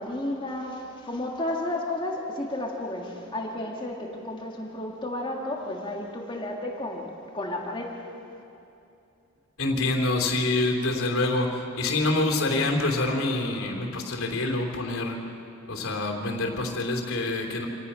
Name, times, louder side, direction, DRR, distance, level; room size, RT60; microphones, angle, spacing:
voice 1, 0.0-8.0 8.3-8.4, left 1 dB, 20° left, 0 dB, 1.9 m, -32 dB
voice 2, 9.6-15.2 15.7-17.7, left 2 dB, 75° left, 0 dB, 3.1 m, -26 dB
26.5 x 18.0 x 5.7 m, 2.7 s
head